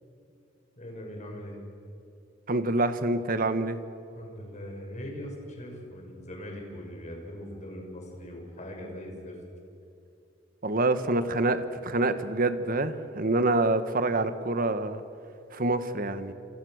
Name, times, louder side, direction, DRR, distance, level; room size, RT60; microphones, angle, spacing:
voice 1, 0.8-1.6 4.1-9.4, left 1 dB, 40° left, 1 dB, 6.1 m, -41 dB
voice 2, 2.5-3.8 10.6-15.0 15.5-16.3, right 2 dB, 50° right, 10 dB, 1.5 m, -26 dB
28.0 x 27.5 x 6.6 m, 2.6 s
head